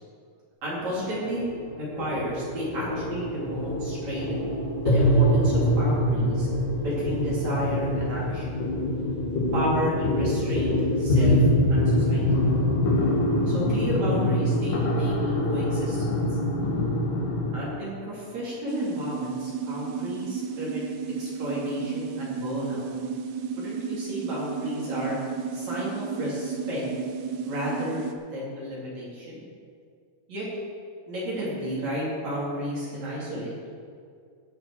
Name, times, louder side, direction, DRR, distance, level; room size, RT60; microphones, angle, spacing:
voice 1, 0.6-1.5 1.8-4.3 4.8-6.5 6.7-8.5 9.5-11.4 11.7-12.3 13.5-16.4 17.5-20.9 21.2-22.8 23.6-25.2 25.5-26.8 27.4-28.0 28.3-29.4 30.3-30.5 31.1-33.5, equal, 50° right, -7 dB, 4.0 m, -32 dB
sound 1, 0.7-17.5, equal, 60° left, 3.8 m, -24 dB
sound 2, 18.7-28.2, right 6 dB, 90° right, 2.8 m, -33 dB
16.5 x 6.4 x 6.3 m, 2.3 s
omnidirectional pair, 4.3 m